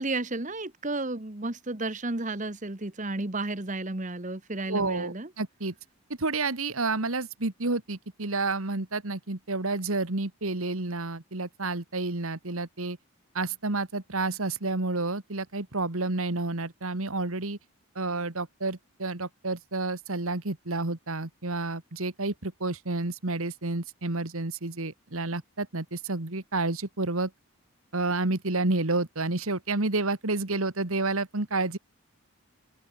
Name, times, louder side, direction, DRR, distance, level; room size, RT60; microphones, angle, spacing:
voice 1, 0.0-5.3, right 2 dB, 35° right, 1.4 m, -32 dB
voice 2, 4.7-5.7 6.2-13.0 13.3-17.6 18.0-27.3 27.9-31.8, right 3 dB, 70° right, 1.9 m, -30 dB
open air
head